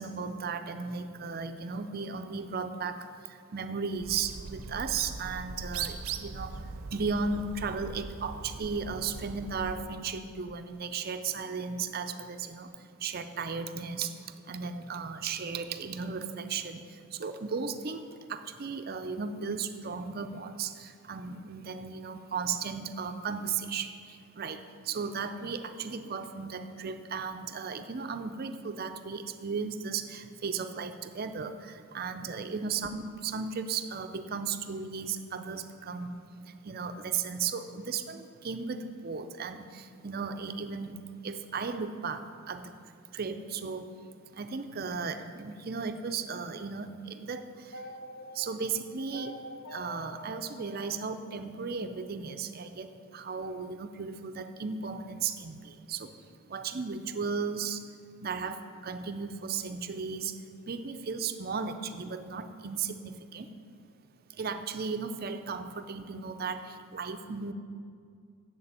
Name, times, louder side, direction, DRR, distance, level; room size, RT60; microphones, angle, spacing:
voice 1, 0.0-42.8 43.1-44.0 44.3-47.8 48.3-49.4 49.7-56.2 56.5-57.9 58.2-63.5 64.3-67.5, right 5 dB, 45° right, 9 dB, 0.5 m, -36 dB
Bird, 4.0-9.9, right 5 dB, 90° right, 0.6 m, -40 dB
sound 1, 47.7-51.9, equal, 55° left, 1.8 m, -46 dB
7.7 x 6.8 x 8.1 m, 2.3 s
head